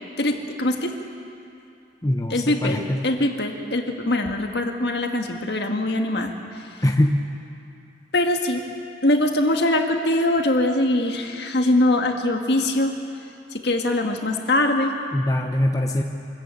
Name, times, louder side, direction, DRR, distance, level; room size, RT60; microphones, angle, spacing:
voice 1, 0.2-0.9 2.3-6.7 8.1-8.7 9.0-13.0 13.5-15.0, left 1 dB, 60° left, 3 dB, 1.8 m, -22 dB
voice 2, 2.0-2.3 2.6-3.0 6.8-7.2 15.1-16.0, left 1 dB, 20° left, 2 dB, 0.9 m, -21 dB
24.5 x 14.0 x 8.4 m, 2.6 s
head